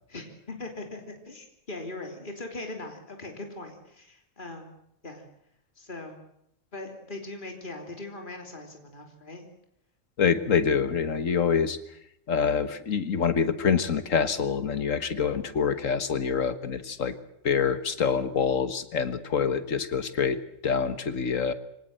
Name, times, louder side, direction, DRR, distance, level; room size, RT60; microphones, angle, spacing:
voice 1, 0.1-4.7 5.0-5.2 5.8-6.2 6.7-9.5, left 2 dB, 40° left, 3 dB, 3.6 m, -40 dB
voice 2, 10.2-11.8 12.3-17.1 17.4-20.4 20.6-21.5, left 6 dB, 85° left, 12 dB, 1.9 m, -26 dB
24.5 x 18.5 x 7.7 m, 0.75 s
omnidirectional pair, 1.3 m